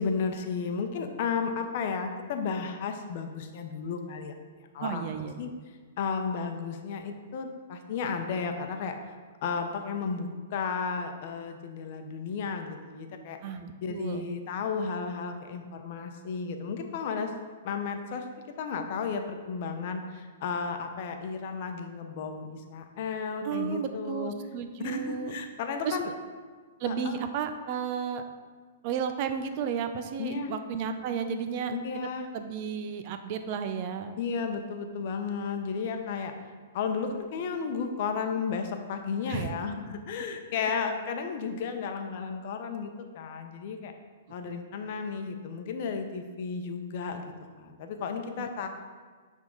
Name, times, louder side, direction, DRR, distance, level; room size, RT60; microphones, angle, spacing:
voice 1, 0.0-4.3 4.7-5.0 5.4-5.5 6.0-8.9 9.4-13.4 13.8-17.3 17.6-18.2 18.6-24.3 24.8-26.1 26.9-27.2 30.2-30.5 31.7-32.3 34.2-36.3 36.7-43.9 44.3-47.2 47.6-48.7, left 5 dB, 50° left, 5 dB, 0.8 m, -33 dB
voice 2, 4.8-5.5 13.4-14.3 23.4-25.4 25.8-26.0 26.8-28.2 28.8-31.7 32.3-34.2 39.3-39.6 44.4-44.6 48.4-48.5, right 7 dB, 45° right, 8 dB, 0.5 m, -33 dB
10.5 x 3.7 x 3.8 m, 1.5 s
hypercardioid pair, 135°, 0 cm